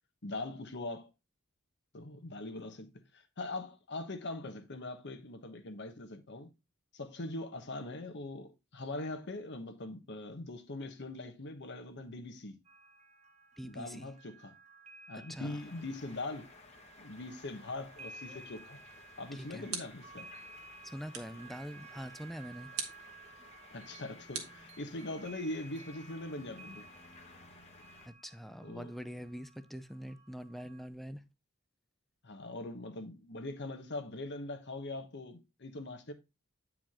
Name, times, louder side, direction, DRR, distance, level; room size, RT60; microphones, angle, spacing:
voice 1, 0.2-1.1 1.9-6.5 6.9-12.6 13.6-14.5 15.1-16.5 17.0-18.8 19.2-20.3 23.7-26.9 28.6-28.9 32.2-36.1, left 2 dB, 55° left, 1.2 m, -42 dB
sound 1, 12.6-30.9, right 3 dB, 35° right, 1.5 m, -55 dB
voice 2, 13.6-14.1 15.1-15.6 19.3-19.7 20.8-22.7 28.0-31.2, equal, ahead, 0.5 m, -44 dB
sound 2, 15.4-28.1, left 3 dB, 30° left, 1.4 m, -57 dB
sound 3, 19.7-20.2 21.1-21.5 22.7-23.1 24.3-25.2, right 7 dB, 85° right, 1.7 m, -42 dB
9.2 x 4.8 x 3.6 m
head